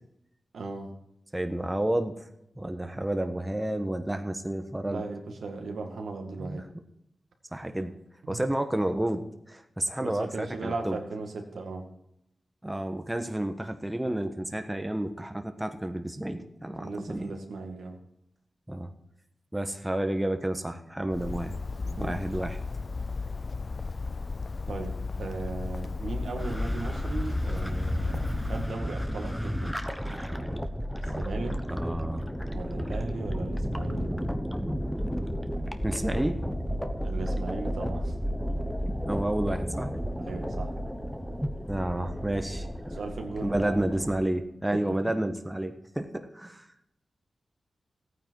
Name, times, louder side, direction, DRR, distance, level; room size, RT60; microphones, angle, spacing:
voice 1, 0.5-0.9 4.8-6.7 8.2-8.4 10.0-11.8 16.8-18.0 21.8-22.2 24.7-29.7 31.1-31.6 32.5-34.1 37.0-38.1 40.2-40.7 42.9-43.8 44.7-45.0, right 3 dB, 85° right, 3 dB, 2.1 m, -37 dB
voice 2, 1.3-2.2 2.6-5.0 6.4-6.6 7.5-7.9 8.3-11.0 12.6-17.3 18.7-18.9 19.5-21.5 22.0-22.6 31.7-32.3 35.8-36.4 39.1-39.9 41.7-42.7 43.4-46.7, right 1 dB, 15° right, 6 dB, 1.2 m, -30 dB
Bird, 21.1-28.7, left 4 dB, 50° left, 0.4 m, -34 dB
sound 1, 26.4-44.1, equal, ahead, 1.1 m, -32 dB
14.5 x 9.3 x 4.7 m, 0.82 s
cardioid pair, 60°, 0 cm